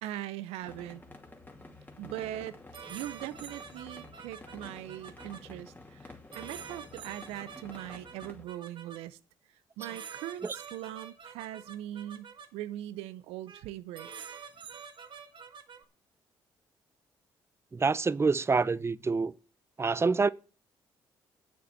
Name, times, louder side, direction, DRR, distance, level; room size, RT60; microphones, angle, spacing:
voice 1, 0.0-1.0 2.0-2.6 2.9-9.2 9.8-14.3, right 13 dB, 80° right, 0.6 m, -41 dB
sound 1, 0.6-8.4, left 2 dB, 20° left, 2.5 m, -50 dB
sound 2, 2.7-5.4 6.3-9.0 9.8-12.5 13.5-13.6 13.9-15.8, right 6 dB, 55° right, 1.7 m, -47 dB
voice 2, 17.7-19.3 19.8-20.3, right 4 dB, 25° right, 0.6 m, -26 dB
8.3 x 7.3 x 7.5 m
hypercardioid pair, 50°, 10 cm